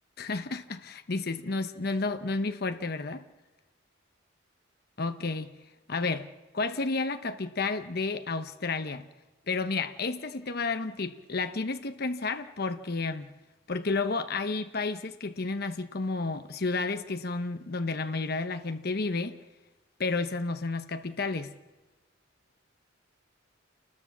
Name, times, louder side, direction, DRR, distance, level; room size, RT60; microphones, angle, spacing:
voice 1, 0.2-3.2 5.0-5.5 5.9-6.3 6.5-9.1 9.5-13.3 13.7-19.4 20.0-21.5, left 3 dB, 50° left, 0.9 m, -31 dB
28.0 x 20.0 x 7.3 m
head